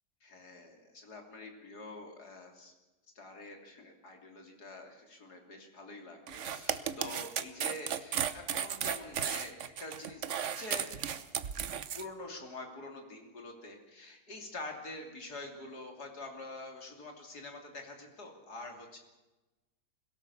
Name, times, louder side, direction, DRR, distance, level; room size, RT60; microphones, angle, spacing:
voice 1, 0.2-2.7 3.2-10.9 11.9-19.0, left 2 dB, 75° left, 3 dB, 3.5 m, -46 dB
sound 1, 6.3-12.0, right 8 dB, 55° right, 1.1 m, -35 dB
21.5 x 17.5 x 7.0 m, 1.1 s
omnidirectional pair, 1.7 m